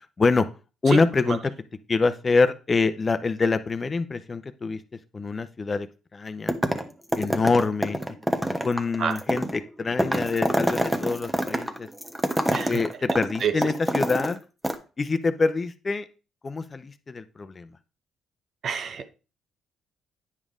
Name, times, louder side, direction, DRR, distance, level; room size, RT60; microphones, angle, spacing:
voice 1, 0.2-0.5 0.8-1.5 1.9-4.8 5.1-5.9 6.1-6.6 7.2-8.0 8.6-11.9 12.7-14.4 15.0-16.0 16.4-17.7, left 4 dB, 30° left, 0.7 m, -25 dB
sound 1, 6.5-6.9 7.1-14.4 14.6-14.7, right 1 dB, 10° right, 1.0 m, -26 dB
voice 2, 12.5-12.8 13.1-13.5 18.6-19.1, right 7 dB, 60° right, 0.9 m, -28 dB
9.7 x 5.3 x 3.7 m
cardioid pair, 90°, 0 cm